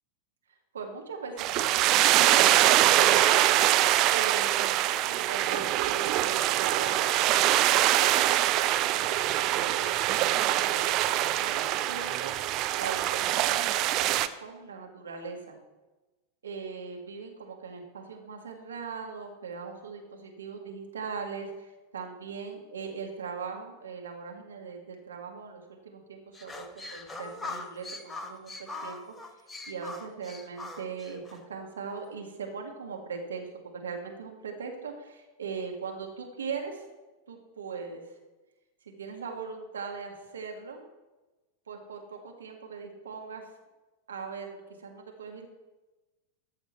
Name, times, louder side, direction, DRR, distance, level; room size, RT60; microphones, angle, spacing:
voice 1, 0.7-7.1 7.5-10.0 10.3-12.3 12.8-15.6 16.4-26.7 26.9-29.0 29.7-33.5 33.8-36.8 37.3-38.1 38.9-40.8 41.7-43.4 44.1-45.5, right 5 dB, 70° right, 2 dB, 2.0 m, -40 dB
sound 1, 1.4-14.3, right 14 dB, 40° right, 0.5 m, -24 dB
sound 2, 26.3-31.4, left 3 dB, 15° left, 1.0 m, -41 dB
14.0 x 6.6 x 4.6 m, 1.1 s
figure-of-eight pair, 90°, 0 cm